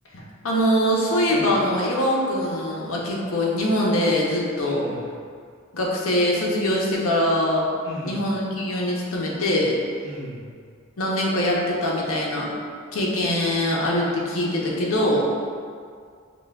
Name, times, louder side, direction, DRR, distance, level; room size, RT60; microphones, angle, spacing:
voice 1, 0.1-4.9 5.7-7.7 8.0-9.8 11.0-12.5 12.9-15.2, left 1 dB, 70° left, -3 dB, 0.7 m, -23 dB
voice 2, 1.3-1.6 4.6-5.0 7.8-8.3 10.0-10.5, equal, 55° right, -6 dB, 0.8 m, -37 dB
5.8 x 2.2 x 2.2 m, 2.2 s
head